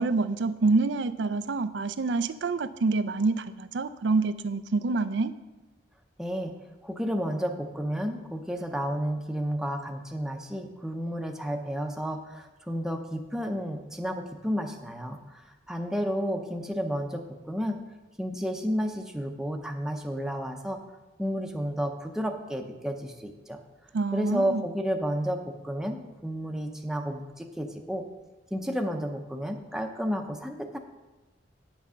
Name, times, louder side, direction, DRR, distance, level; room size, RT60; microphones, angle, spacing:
voice 1, 0.0-5.3 23.9-24.6, right 3 dB, 85° right, 13 dB, 0.5 m, -27 dB
voice 2, 6.2-6.5 6.8-17.8 18.2-20.8 21.2-23.6 24.1-28.0 28.5-30.8, equal, 5° right, 3 dB, 0.7 m, -31 dB
8.8 x 6.1 x 5.6 m, 1.1 s
head